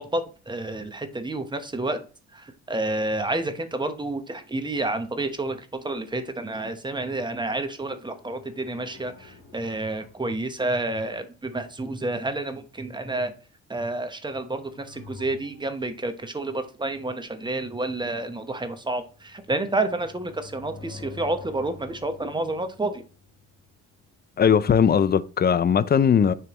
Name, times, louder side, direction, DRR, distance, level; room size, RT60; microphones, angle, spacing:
voice 1, 0.0-2.0 2.3-13.3 13.7-23.0, right 2 dB, 15° right, 0.9 m, -29 dB
sound 1, 7.9-11.0 14.3-16.0 18.4-24.4 24.7-24.8, left 4 dB, 70° left, 1.5 m, -48 dB
voice 2, 24.4-26.3, left 7 dB, 35° left, 0.4 m, -19 dB
9.4 x 3.3 x 3.0 m
cardioid pair, 90°, 30 cm